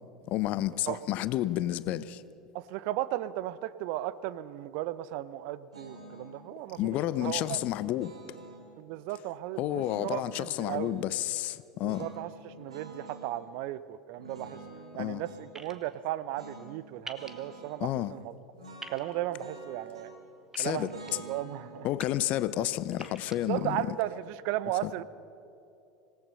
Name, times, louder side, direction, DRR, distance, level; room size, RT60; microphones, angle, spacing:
voice 1, 0.3-2.2 6.8-8.2 9.6-12.1 14.9-15.2 17.8-18.1 20.6-20.9 21.8-23.9 24.8-24.9, left 14 dB, 50° left, 0.7 m, -30 dB
voice 2, 2.5-7.6 8.8-11.1 11.8-14.6 14.9-18.3 18.9-20.1 20.6-20.9 21.2-21.9 23.5-25.0, right 14 dB, 55° right, 0.7 m, -35 dB
sound 1, 5.7-6.4 7.2-8.7 9.7-11.1 11.8-13.3 14.2-15.5 16.3-16.7 16.9-17.8 18.6-20.3 20.8-23.9, right 2 dB, 80° right, 3.3 m, -49 dB
sound 2, 15.5-15.7 17.1-17.3 18.8-19.0 20.5-21.1 21.8-22.1 22.9-23.4, right 3 dB, 15° right, 2.0 m, -44 dB
26.5 x 18.0 x 5.6 m
figure-of-eight pair, 75°, 3 cm